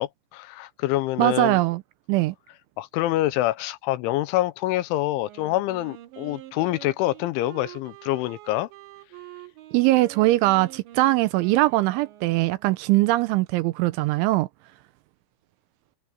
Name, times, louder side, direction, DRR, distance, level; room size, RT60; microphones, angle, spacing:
voice 1, 0.0-1.6 2.8-8.7, left 16 dB, 80° left, 3.0 m, -26 dB
voice 2, 1.2-1.8 2.1-2.4 9.7-14.5, right 18 dB, 85° right, 2.9 m, -21 dB
Wind instrument woodwind instrument, 5.2-13.0, right 15 dB, 70° right, 4.1 m, -46 dB
omnidirectional pair, 5.8 m